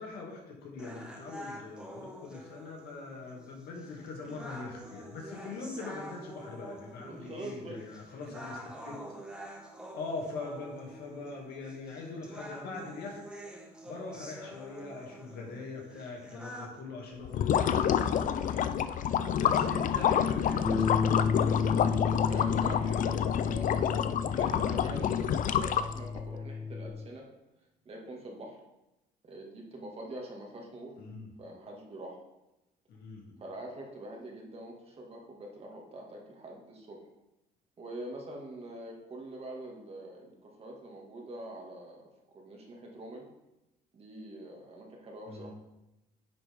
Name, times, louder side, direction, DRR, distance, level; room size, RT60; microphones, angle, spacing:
voice 1, 0.0-8.9 9.9-13.2 13.9-21.5 31.0-31.3 32.9-33.4 45.3-45.5, left 3 dB, 70° left, -1 dB, 2.4 m, -42 dB
sound 1, 0.8-16.8, equal, 5° right, 1.7 m, -47 dB
voice 2, 7.0-7.8 22.2-27.3 27.8-28.6 29.2-30.9 31.4-32.2 33.4-37.1 37.8-43.3 43.9-45.5, right 1 dB, 35° right, -1 dB, 2.1 m, -44 dB
sound 2, 17.2-26.2, left 9 dB, 50° left, 0.5 m, -28 dB
Bass guitar, 20.7-26.9, left 4 dB, 15° left, 1.3 m, -32 dB
9.9 x 6.8 x 3.7 m, 0.94 s
cardioid pair, 110°, 17 cm